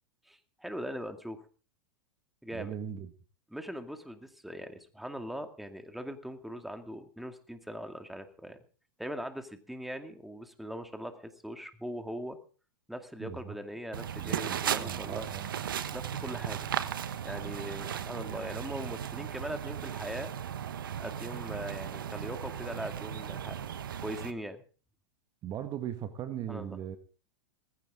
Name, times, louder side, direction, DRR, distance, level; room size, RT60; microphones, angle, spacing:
voice 1, 0.3-1.4 2.4-2.7 3.5-8.6 9.0-12.4 12.9-15.2 15.9-16.7 17.2-20.3 21.0-23.6 24.0-24.6 26.5-26.8, equal, ahead, 7 dB, 2.3 m, -40 dB
voice 2, 2.5-3.1 13.2-13.6 14.2-15.5 25.4-27.0, right 10 dB, 35° right, 9 dB, 1.6 m, -39 dB
sound 1, 13.9-24.3, right 9 dB, 75° right, 1.3 m, -36 dB
19.0 x 16.0 x 3.8 m, 0.39 s
hypercardioid pair, 105°, 11 cm